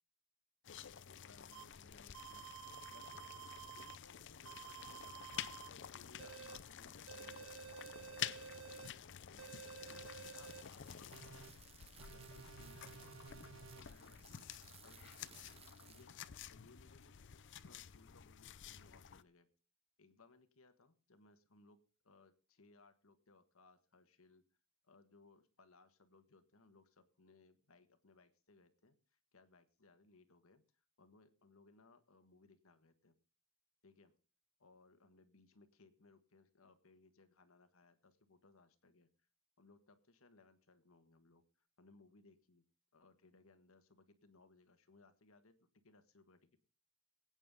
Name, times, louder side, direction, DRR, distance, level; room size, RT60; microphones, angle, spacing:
sound 1, 0.6-19.2, left 9 dB, 55° left, 0.6 m, -51 dB
voice 1, 1.1-2.4 2.9-5.2 5.6-11.7 12.0-14.5 14.8-19.5 20.0-21.8 22.0-24.4 24.8-33.1 33.8-34.1 34.6-39.1 39.6-41.4 41.8-42.6 42.9-46.6, left 3 dB, 70° left, 10 dB, 1.5 m, -66 dB
sound 2, 1.5-1.6 2.1-4.0 4.5-5.7 6.2-6.6 7.1-8.9 9.4-10.6 11.1-11.5 12.0-13.8, right 8 dB, 65° right, 1.2 m, -52 dB
sound 3, 10.3-16.1, right 8 dB, 25° right, 0.8 m, -63 dB
22.0 x 9.1 x 3.7 m, 0.35 s
head